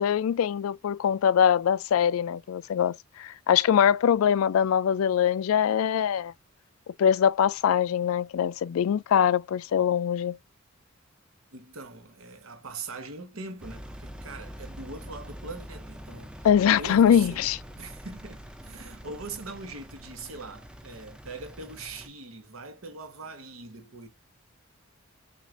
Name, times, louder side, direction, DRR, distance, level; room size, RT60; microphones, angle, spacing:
voice 1, 0.0-6.3 6.9-10.4 16.4-17.6, left 8 dB, 90° left, 0.3 m, -23 dB
voice 2, 11.5-16.4 16.8-17.4 17.8-24.1, right 3 dB, 90° right, 1.1 m, -41 dB
Engine, 13.6-22.1, equal, 5° right, 0.4 m, -44 dB
6.2 x 2.5 x 2.4 m
head